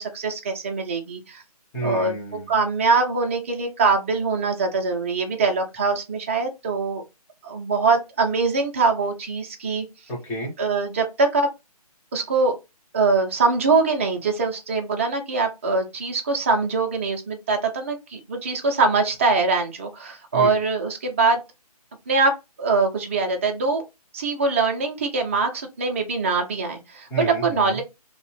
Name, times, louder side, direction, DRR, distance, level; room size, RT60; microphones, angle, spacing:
voice 1, 0.0-1.4 1.8-2.1 2.5-7.0 7.4-9.9 10.6-11.5 12.1-12.6 12.9-21.4 22.1-23.8 24.1-27.1 27.4-27.8, right 4 dB, 20° right, 0.4 m, -23 dB
voice 2, 1.7-2.5 10.1-10.5 20.3-20.6 27.1-27.8, right 1 dB, 10° left, 0.7 m, -30 dB
2.7 x 2.0 x 3.0 m
figure-of-eight pair, 150°, 20 cm